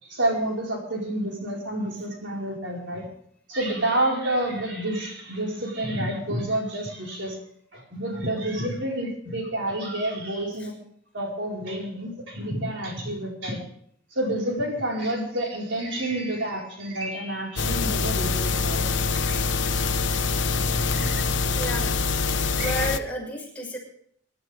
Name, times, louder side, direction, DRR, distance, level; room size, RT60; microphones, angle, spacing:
voice 1, 0.0-3.1 3.5-7.4 7.7-10.7 11.1-13.6 14.1-18.9 19.1-19.7 20.9-21.2 22.6-22.9, right 1 dB, 65° right, -1 dB, 4.9 m, -29 dB
sound 1, 17.6-23.0, left 4 dB, 65° left, 1.0 m, -25 dB
voice 2, 21.6-21.9 22.6-23.8, equal, 5° left, -3 dB, 6.2 m, -31 dB
24.5 x 13.0 x 3.6 m, 0.66 s
head